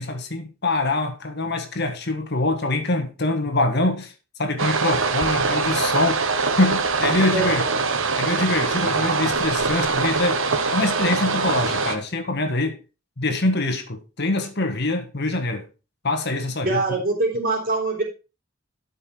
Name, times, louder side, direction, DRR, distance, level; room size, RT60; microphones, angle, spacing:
voice 1, 0.0-4.1 4.4-6.2 6.6-7.6 8.2-12.8 13.2-15.7 16.0-16.8, left 2 dB, 50° left, 1.5 m, -24 dB
sound 1, 4.6-12.0, right 4 dB, 65° right, 1.3 m, -23 dB
voice 2, 7.3-7.7 16.6-18.0, right 2 dB, 40° right, 4.0 m, -23 dB
12.5 x 5.5 x 4.4 m
head